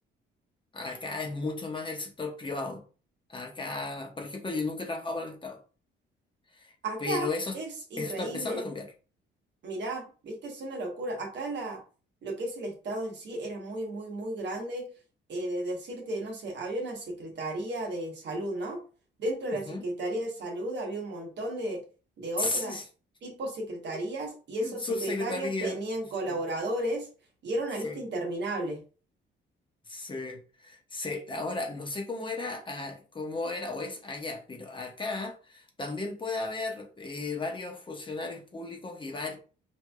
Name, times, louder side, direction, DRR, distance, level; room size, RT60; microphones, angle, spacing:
voice 1, 0.7-2.8 3.3-5.6 6.5-6.7 7.0-7.6 8.0-8.9 19.5-19.8 22.4-22.8 23.9-24.0 24.6-25.8 26.2-26.4 27.8-28.0 29.9-39.4, left 3 dB, 25° left, 0.9 m, -35 dB
voice 2, 6.8-7.3 7.5-8.6 9.6-11.8 12.2-14.9 15.3-18.8 19.2-21.8 22.2-22.8 23.2-27.1 27.4-28.8, right 1 dB, 60° right, 1.2 m, -34 dB
4.6 x 2.7 x 2.3 m
cardioid pair, 90°, 20 cm